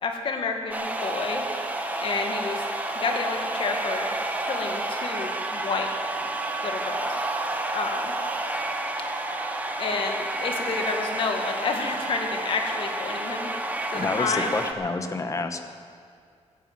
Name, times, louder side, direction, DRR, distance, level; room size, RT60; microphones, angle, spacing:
voice 1, 0.0-1.4 2.0-2.7 2.9-4.1 4.4-5.9 6.6-7.4 7.7-8.1 9.8-13.5 13.9-14.6, left 4 dB, 50° left, 3 dB, 1.9 m, -30 dB
sound 1, 0.7-14.7, right 2 dB, 15° right, 1.2 m, -30 dB
voice 2, 13.9-15.6, left 3 dB, 25° left, 7 dB, 1.0 m, -28 dB
15.0 x 10.5 x 8.0 m, 2.2 s
wide cardioid pair, 145°, 12 cm